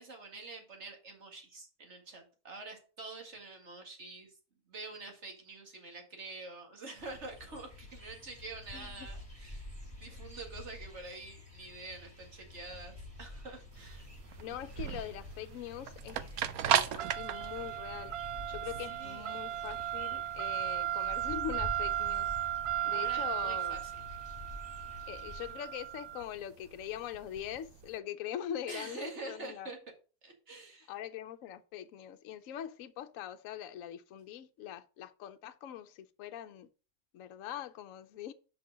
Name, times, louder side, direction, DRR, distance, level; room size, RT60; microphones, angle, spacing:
voice 1, 0.0-4.3 4.7-9.7 9.9-14.1 18.9-19.5 22.9-23.9 28.7-29.8 30.2-30.9, right 3 dB, 50° right, 2.2 m, -46 dB
sound 1, 6.9-25.5, left 2 dB, 10° right, 3.7 m, -49 dB
voice 2, 8.7-9.1 14.4-16.3 16.6-18.1 18.5-22.4 22.8-23.8 25.1-29.7 30.9-36.7 37.1-38.3, left 10 dB, 70° left, 1.0 m, -42 dB
sound 2, 13.7-27.9, right 11 dB, 85° right, 1.1 m, -35 dB
5.7 x 5.3 x 6.1 m
omnidirectional pair, 1.5 m